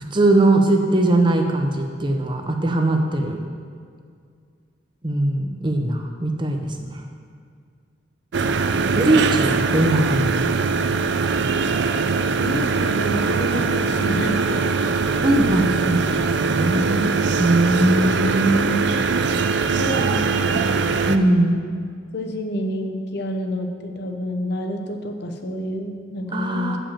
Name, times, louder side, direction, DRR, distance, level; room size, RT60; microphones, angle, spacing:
voice 1, 0.1-3.4 5.0-7.0 8.9-10.6 15.2-16.1 16.4-18.8 21.0-21.5 26.3-26.8, right 1 dB, 25° right, 3 dB, 0.7 m, -20 dB
sound 1, 8.3-21.2, right 4 dB, 55° right, 0.4 m, -21 dB
voice 2, 12.4-15.1 19.5-20.9 22.1-26.8, equal, 55° left, 4 dB, 0.8 m, -29 dB
8.8 x 5.1 x 7.3 m, 2.2 s
head